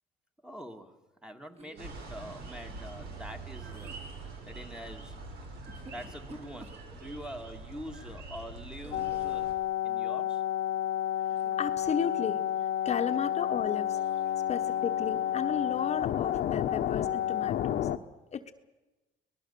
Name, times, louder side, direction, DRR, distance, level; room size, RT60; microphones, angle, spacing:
voice 1, 0.4-9.5 9.8-10.4 14.2-14.5, equal, 5° right, 1.8 m, -45 dB
sound 1, 1.5-2.2 3.7-4.3 5.6-7.3 8.8-9.5 11.3-11.8 12.1-12.5 13.9-14.4, right 3 dB, 35° right, 3.6 m, -53 dB
sound 2, 1.8-9.6, right 3 dB, 70° right, 4.9 m, -44 dB
sound 3, 8.9-18.0, left 11 dB, 65° left, 1.0 m, -30 dB
voice 2, 11.6-12.4 12.8-14.0 14.5-17.9 18.3-18.5, left 7 dB, 40° left, 1.1 m, -34 dB
24.5 x 19.5 x 6.9 m
cardioid pair, 110°, 17 cm